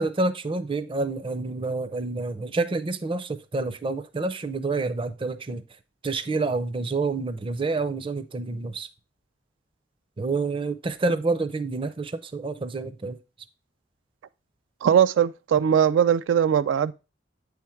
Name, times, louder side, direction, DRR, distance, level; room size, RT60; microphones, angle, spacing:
voice 1, 0.0-5.6 6.0-8.9 10.2-13.2, right 3 dB, 30° right, 0.5 m, -28 dB
voice 2, 14.8-16.9, right 8 dB, 90° right, 0.3 m, -20 dB
8.1 x 3.6 x 4.4 m
head